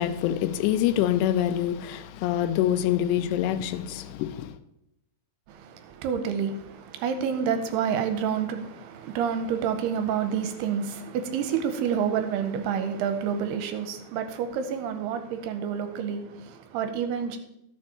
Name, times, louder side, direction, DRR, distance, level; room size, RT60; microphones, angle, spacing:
voice 1, 0.0-4.5, left 11 dB, 85° left, 2.8 m, -25 dB
voice 2, 5.5-17.4, right 7 dB, 85° right, 2.7 m, -29 dB
12.5 x 6.6 x 4.3 m
omnidirectional pair, 4.8 m